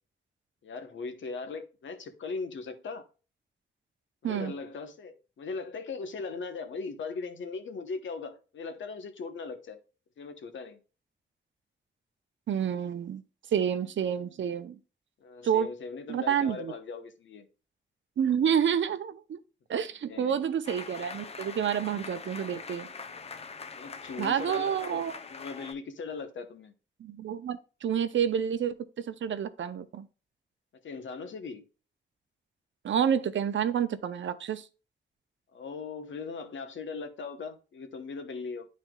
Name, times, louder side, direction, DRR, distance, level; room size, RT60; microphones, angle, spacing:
voice 1, 0.6-3.1 4.2-9.8 10.2-10.8 15.2-17.5 20.1-20.5 23.8-25.0 25.3-26.7 30.8-31.7 35.5-38.7, left 4 dB, 85° left, 1.0 m, -39 dB
voice 2, 12.5-13.2 13.5-14.8 15.4-15.7 16.1-16.7 18.2-19.4 19.7-22.9 24.2-25.2 27.0-30.1 32.8-34.7, right 8 dB, 80° right, 0.6 m, -29 dB
sound 1, 20.6-25.7, left 4 dB, 35° left, 0.5 m, -43 dB
11.0 x 4.2 x 2.3 m
wide cardioid pair, 140°, 19 cm